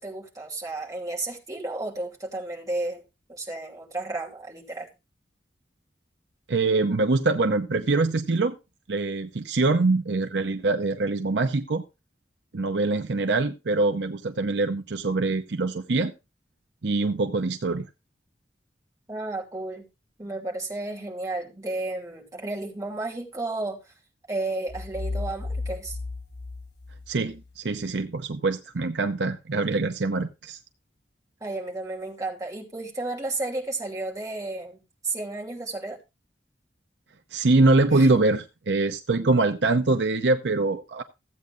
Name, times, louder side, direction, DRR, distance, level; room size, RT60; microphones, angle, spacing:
voice 1, 0.0-3.0 3.3-4.9 19.1-19.9 20.2-23.8 24.3-26.0 31.4-36.0 37.9-38.2, right 2 dB, 20° right, 2.7 m, -32 dB
voice 2, 6.5-8.5 8.9-11.8 12.5-16.1 16.8-17.9 27.1-30.6 37.3-41.0, right 3 dB, 85° right, 0.7 m, -24 dB
sound 1, 24.7-27.5, left 3 dB, 65° left, 1.5 m, -34 dB
15.0 x 8.4 x 2.5 m
head